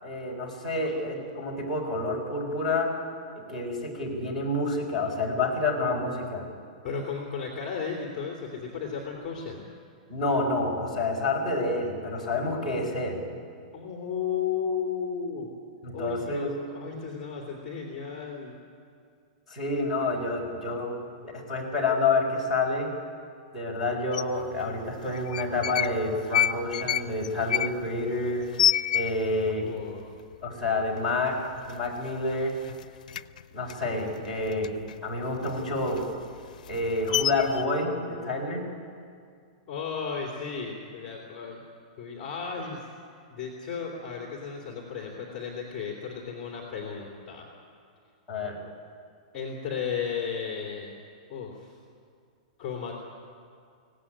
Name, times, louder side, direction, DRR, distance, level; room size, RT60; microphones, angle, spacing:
voice 1, 0.0-2.9 3.3-6.5 10.1-13.2 15.8-16.5 19.5-21.0 21.3-22.9 23.5-28.5 28.9-29.7 30.4-31.4 31.7-32.6 33.5-34.7 35.0-36.0 36.7-38.6 48.3-48.6, left 2 dB, 5° right, -3 dB, 4.1 m, -28 dB
voice 2, 6.8-9.7 13.7-15.5 15.9-18.6 29.6-30.0 39.7-41.6 42.0-42.9 43.3-47.5 49.3-50.9 51.3-51.8 52.6-52.9, left 6 dB, 20° left, -1 dB, 2.8 m, -34 dB
sound 1, 24.1-24.2 25.2-26.0 26.3-29.5 29.8-29.9 30.2-30.7 31.1-31.2 31.5-32.3 32.6-35.0 35.3-37.6, left 10 dB, 85° left, 0.6 m, -28 dB
23.0 x 17.5 x 10.0 m, 2.3 s
supercardioid pair, 175°, 4 cm